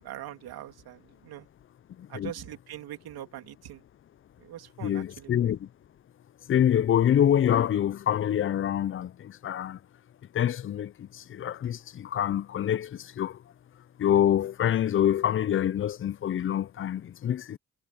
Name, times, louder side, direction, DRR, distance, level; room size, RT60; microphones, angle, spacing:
voice 1, 0.0-1.5 2.1-3.8 4.4-5.3, right 12 dB, 90° right, 2.8 m, -42 dB
voice 2, 2.0-2.3 4.8-5.7 6.5-9.8 10.3-13.4 14.0-17.6, left 10 dB, 35° left, 0.4 m, -26 dB
cardioid pair, 100°, 36 cm